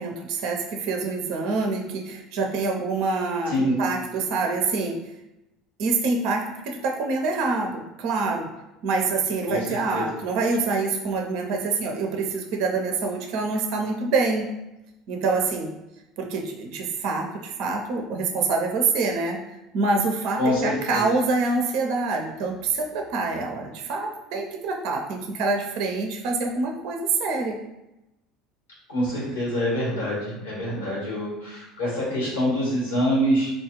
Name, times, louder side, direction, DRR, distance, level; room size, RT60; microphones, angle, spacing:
voice 1, 0.0-5.0 5.8-8.5 8.8-14.5 15.1-15.7 16.2-19.4 19.7-27.6, right 3 dB, 65° right, 2 dB, 0.5 m, -26 dB
voice 2, 9.5-10.1 20.4-21.0 28.9-33.5, equal, 85° left, -6 dB, 1.5 m, -25 dB
4.0 x 2.3 x 3.0 m, 0.94 s
hypercardioid pair, 70°, 0 cm